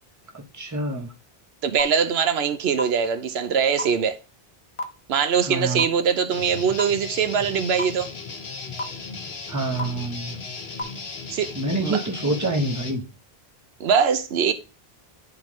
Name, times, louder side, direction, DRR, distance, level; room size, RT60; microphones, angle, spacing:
voice 1, 0.5-1.1 5.5-5.9 9.5-10.4 11.5-13.0, right 2 dB, 20° right, 1.0 m, -26 dB
voice 2, 1.6-4.2 5.1-8.1 11.3-11.5 11.8-12.0 13.8-14.5, right 7 dB, 85° right, 0.9 m, -22 dB
sound 1, 1.8-1.9 2.8-2.9 3.8-3.9 4.8-4.9 5.8-5.9 6.8-6.9 7.8-7.9 8.8-8.9 9.8-9.9 10.8-10.9, left 2 dB, 35° left, 0.8 m, -26 dB
Guitar, 6.3-13.0, left 4 dB, 85° left, 1.3 m, -36 dB
10.5 x 3.7 x 3.1 m
omnidirectional pair, 1.0 m